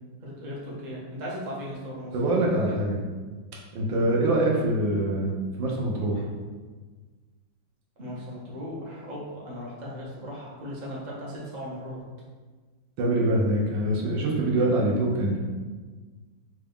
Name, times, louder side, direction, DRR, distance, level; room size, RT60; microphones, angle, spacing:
voice 1, 0.2-2.1 8.0-12.0, equal, 45° right, -6 dB, 0.5 m, -37 dB
voice 2, 2.1-3.0 3.7-6.2 13.0-15.4, right 1 dB, 80° right, -2 dB, 1.4 m, -24 dB
4.0 x 2.3 x 3.5 m, 1.4 s
omnidirectional pair, 2.1 m